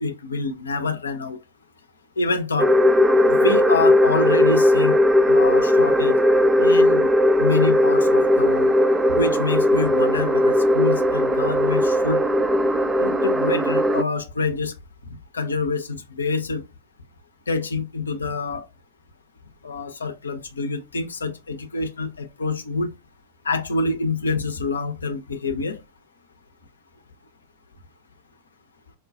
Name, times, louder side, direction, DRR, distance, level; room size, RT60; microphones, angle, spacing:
voice 1, 0.0-1.4 2.2-2.7 3.3-5.0 5.3-6.2 6.6-7.1 7.4-8.7 9.1-12.2 13.0-14.7 15.1-16.6 17.5-18.6 19.6-22.9 23.4-25.8, left 3 dB, 75° left, 0.6 m, -26 dB
sound 1, 2.6-14.0, left 1 dB, 10° right, 0.4 m, -18 dB
4.8 x 2.3 x 2.4 m
figure-of-eight pair, 90°, 0 cm